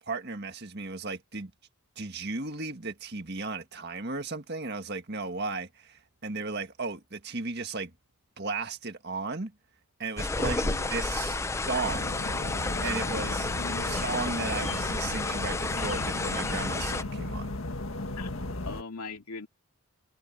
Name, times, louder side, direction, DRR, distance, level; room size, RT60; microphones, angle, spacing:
voice 1, 0.1-1.5 2.0-7.9 8.4-9.5 10.0-12.2 12.8-13.5 13.8-17.5, right 3 dB, 45° right, 1.8 m, -35 dB
sound 1, 10.2-17.0, left 3 dB, 10° left, 0.4 m, -31 dB
voice 2, 10.4-11.4 13.6-14.4 18.2-19.5, left 3 dB, 85° left, 2.5 m, -41 dB
sound 2, 11.8-18.8, left 2 dB, 65° left, 1.8 m, -35 dB
head